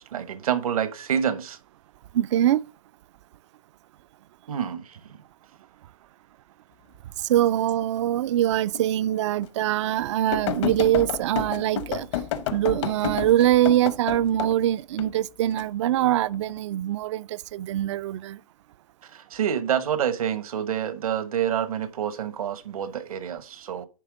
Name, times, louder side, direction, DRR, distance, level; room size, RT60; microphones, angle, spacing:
voice 1, 0.0-1.6 4.5-5.0 19.1-23.9, right 9 dB, 75° right, 1.1 m, -27 dB
voice 2, 2.1-2.6 7.2-12.1 12.5-18.4, right 13 dB, 55° right, 0.4 m, -23 dB
sound 1, 8.7-8.8 9.4-9.5 10.3-14.5 15.0-15.6 16.3-16.6, left 9 dB, 55° left, 0.9 m, -30 dB
10.0 x 3.4 x 4.9 m
hypercardioid pair, 145°, 18 cm